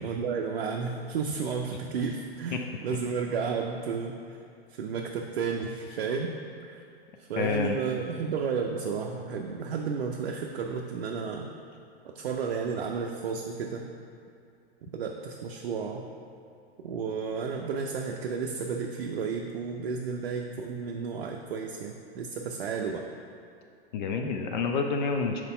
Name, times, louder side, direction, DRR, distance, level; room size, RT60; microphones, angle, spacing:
voice 1, 0.0-4.4 4.7-6.3 6.6-6.8 7.2-11.5 12.0-13.9 14.9-16.1 16.8-23.1, right 5 dB, 65° right, 2 dB, 0.5 m, -32 dB
voice 2, 7.4-7.8 23.9-25.4, left 5 dB, 50° left, 3 dB, 0.5 m, -28 dB
4.5 x 4.0 x 5.5 m, 2.4 s
figure-of-eight pair, 100°, 31 cm